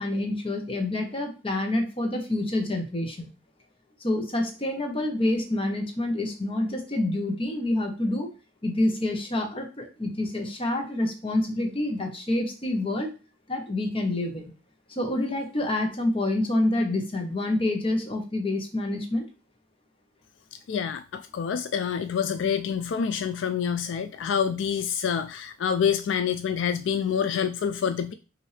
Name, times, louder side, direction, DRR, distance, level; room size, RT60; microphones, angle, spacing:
voice 1, 0.0-3.3 4.0-8.3 8.6-13.1 13.5-14.5 14.9-19.2, left 1 dB, 30° left, 3 dB, 1.0 m, -27 dB
voice 2, 20.7-28.1, left 7 dB, 75° left, 10 dB, 0.3 m, -27 dB
5.5 x 2.7 x 3.2 m, 0.32 s
head